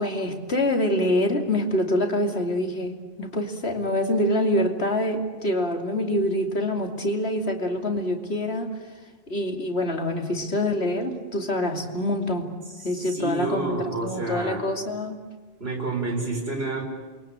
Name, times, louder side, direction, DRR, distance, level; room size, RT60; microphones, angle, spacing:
voice 1, 0.0-8.8 9.3-12.5 12.8-15.2, left 1 dB, 85° left, 3 dB, 3.1 m, -25 dB
voice 2, 13.0-14.7 15.6-16.8, right 2 dB, 75° right, 2 dB, 4.9 m, -29 dB
29.0 x 23.0 x 8.9 m, 1.4 s
omnidirectional pair, 1.1 m